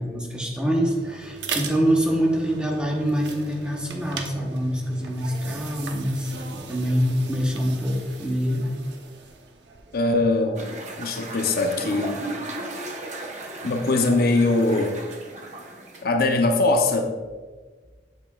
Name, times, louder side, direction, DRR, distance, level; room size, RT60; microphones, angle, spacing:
voice 1, 0.0-8.7, equal, 5° right, -1 dB, 0.9 m, -25 dB
sound 1, 0.6-10.5, right 4 dB, 75° right, 0.8 m, -38 dB
voice 2, 9.9-10.7 11.0-12.2 13.6-14.9 16.0-17.1, left 2 dB, 55° left, 4 dB, 0.7 m, -21 dB
sound 2, 10.6-16.0, right 2 dB, 40° right, 0.9 m, -35 dB
8.3 x 7.0 x 2.3 m, 1.4 s
head